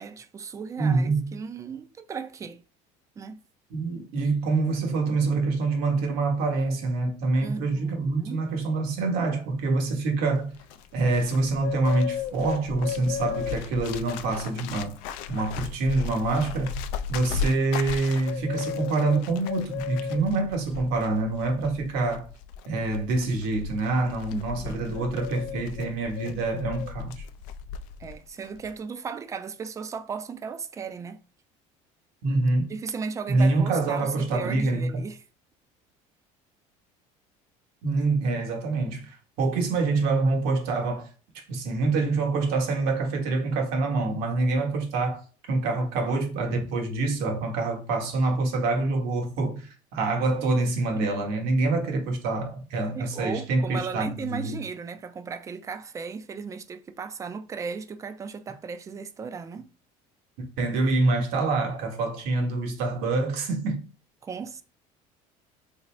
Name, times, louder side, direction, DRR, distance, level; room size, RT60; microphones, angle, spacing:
voice 1, 0.0-2.6 3.2-3.4 7.4-8.5 24.3-25.1 28.0-31.2 32.7-35.2 51.0-51.1 52.9-59.7 64.2-64.6, right 5 dB, 20° right, 0.3 m, -36 dB
voice 2, 0.8-1.3 3.7-10.5 10.9-14.9 15.3-16.8 17.1-22.2 22.7-27.2 32.2-32.7 33.3-35.0 37.8-41.1 41.3-45.2 45.5-54.6 60.6-63.8, right 3 dB, 75° right, 1.1 m, -26 dB
Bird, 10.4-28.2 28.4-28.8, left 7 dB, 80° left, 0.4 m, -35 dB
3.4 x 2.6 x 3.1 m
cardioid pair, 130°, 16 cm